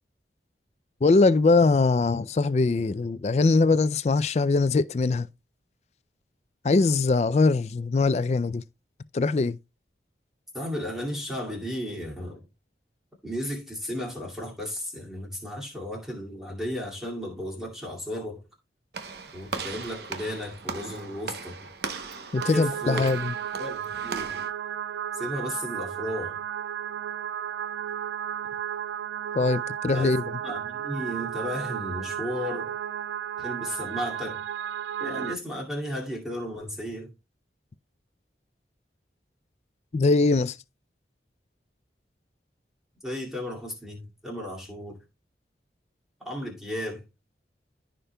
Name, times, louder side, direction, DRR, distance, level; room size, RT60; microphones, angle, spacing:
voice 1, 1.0-5.3 6.6-8.6 9.1-9.6 22.3-23.3 29.3-30.2 39.9-40.6, left 3 dB, 35° left, 0.3 m, -22 dB
voice 2, 10.5-12.5 13.2-18.4 19.3-21.6 22.5-23.1 23.6-24.5 25.1-26.4 29.9-30.1 30.4-32.8 33.4-34.4 35.0-37.1 43.0-45.0 46.2-47.0, equal, ahead, 2.3 m, -34 dB
Walk footsteps / Slam, 18.9-24.5, right 4 dB, 70° right, 0.9 m, -38 dB
sound 1, 22.4-35.4, right 9 dB, 85° right, 0.3 m, -33 dB
14.5 x 5.1 x 2.3 m
head